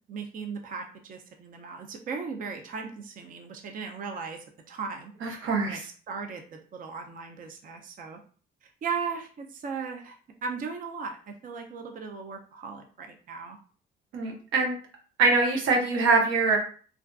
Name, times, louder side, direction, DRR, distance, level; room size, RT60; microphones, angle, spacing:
voice 1, 0.1-8.2 8.6-10.2 10.4-13.6, right 5 dB, 45° right, 4 dB, 0.4 m, -37 dB
voice 2, 5.2-5.8 14.1-14.7 15.2-16.6, right 3 dB, 90° right, 1 dB, 0.7 m, -23 dB
2.4 x 2.4 x 2.2 m, 0.42 s
cardioid pair, 90°, 20 cm